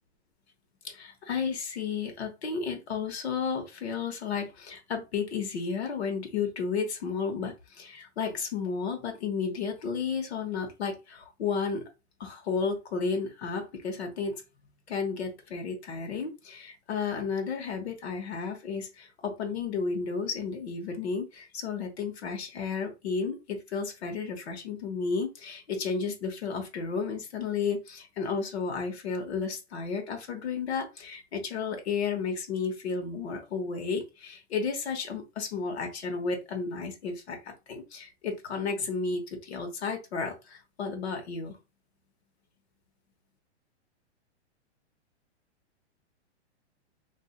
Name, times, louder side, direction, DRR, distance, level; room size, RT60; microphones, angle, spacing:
voice 1, 0.8-11.8 12.2-14.4 14.9-41.6, left 5 dB, 70° left, 4 dB, 1.2 m, -32 dB
4.0 x 2.6 x 2.4 m, 0.26 s
hypercardioid pair, 170°, 34 cm